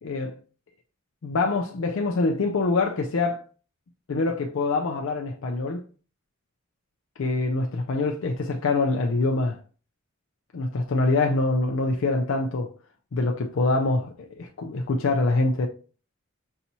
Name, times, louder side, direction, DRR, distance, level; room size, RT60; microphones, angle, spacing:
voice 1, 0.0-0.4 1.2-3.4 4.1-5.8 7.2-9.6 10.5-12.7 13.1-15.7, left 3 dB, 65° left, 0.4 m, -25 dB
5.6 x 2.9 x 2.7 m
head